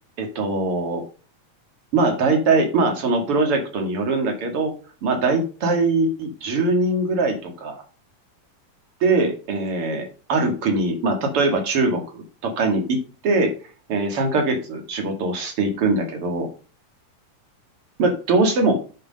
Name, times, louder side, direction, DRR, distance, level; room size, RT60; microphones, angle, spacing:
voice 1, 0.2-1.0 1.9-4.7 5.0-7.8 9.0-13.0 13.2-13.5 13.9-16.5 18.0-18.8, right 3 dB, 50° right, 4 dB, 2.8 m, -22 dB
9.9 x 5.6 x 5.3 m, 0.36 s
omnidirectional pair, 3.5 m